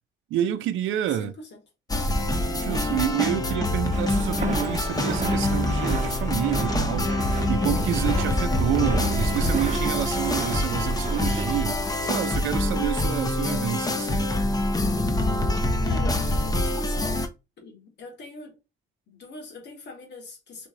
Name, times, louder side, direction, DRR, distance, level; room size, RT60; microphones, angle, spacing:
voice 1, 0.3-1.3 2.5-7.2 7.5-14.3, right 11 dB, 80° right, 0.6 m, -28 dB
voice 2, 1.0-1.6 15.8-16.2 16.6-17.3 17.6-18.6 19.1-20.7, left 3 dB, 60° left, 1.9 m, -42 dB
sound 1, 1.9-17.3, left 1 dB, 20° left, 0.7 m, -25 dB
Walk footsteps, 3.9-11.6, right 3 dB, 35° right, 1.1 m, -33 dB
3.8 x 3.2 x 3.8 m
cardioid pair, 90°, 20 cm